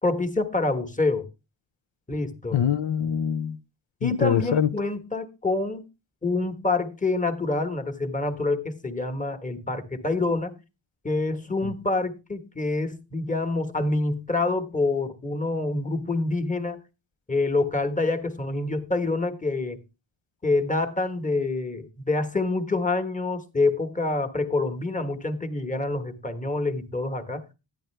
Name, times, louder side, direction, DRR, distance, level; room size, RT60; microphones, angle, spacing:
voice 1, 0.0-1.3 2.1-2.6 4.0-5.8 6.2-10.5 11.0-16.8 17.3-19.8 20.4-27.4, left 2 dB, 15° left, 1.3 m, -26 dB
voice 2, 2.5-3.6 4.0-4.7 11.6-11.7, left 8 dB, 75° left, 0.7 m, -24 dB
10.5 x 10.0 x 3.3 m
wide cardioid pair, 100°, 46 cm